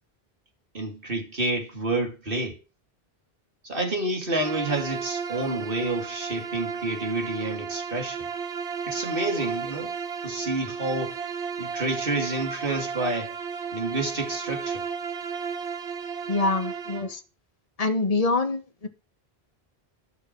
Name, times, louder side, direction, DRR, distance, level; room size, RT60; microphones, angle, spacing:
voice 1, 0.7-2.6 3.6-8.2 8.9-9.9 10.2-11.2 11.6-13.4 13.7-14.9, right 2 dB, 60° right, 2.9 m, -29 dB
Bowed string instrument, 4.4-17.1, right 6 dB, 90° right, 1.4 m, -33 dB
voice 2, 16.3-17.2 17.8-18.9, left 3 dB, 35° left, 1.4 m, -25 dB
12.5 x 6.5 x 6.1 m
omnidirectional pair, 1.0 m